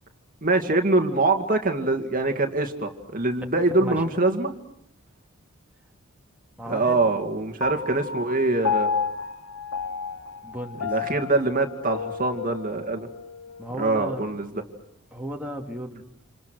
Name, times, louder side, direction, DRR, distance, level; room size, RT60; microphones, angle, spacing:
voice 1, 0.4-4.5 6.7-9.0 10.8-13.1 13.8-14.5, right 2 dB, 40° right, 5 dB, 2.2 m, -24 dB
voice 2, 3.6-4.0 6.6-7.0 10.4-11.0 13.6-14.2 15.1-16.0, equal, 5° right, 1 dB, 2.3 m, -35 dB
Piano, 7.6-14.3, left 6 dB, 80° left, 1.6 m, -32 dB
29.0 x 28.5 x 6.4 m, 0.67 s
head